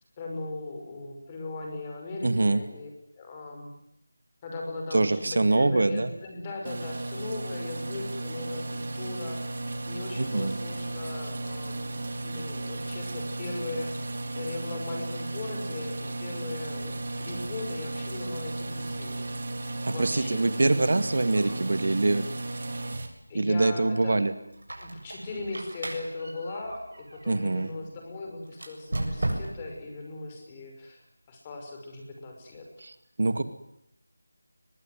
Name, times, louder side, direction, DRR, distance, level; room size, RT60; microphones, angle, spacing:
voice 1, 0.2-2.9 3.2-3.7 4.4-5.2 5.5-9.6 9.9-19.2 19.9-20.9 21.5-21.6 23.3-24.2 24.8-31.0 31.3-32.6, left 2 dB, 15° left, 2 dB, 5.8 m, -38 dB
voice 2, 2.2-2.6 4.9-6.1 10.2-10.6 19.8-22.2 23.3-24.3 27.3-27.7 32.8-33.4, right 2 dB, 55° right, 11 dB, 2.2 m, -24 dB
sound 1, 6.6-23.1, right 2 dB, 40° right, 4.0 m, -35 dB
Squeak, 24.5-27.7 28.5-29.8, right 1 dB, 75° right, 7.6 m, -35 dB
23.5 x 22.5 x 9.4 m, 0.78 s
figure-of-eight pair, 175°, 0 cm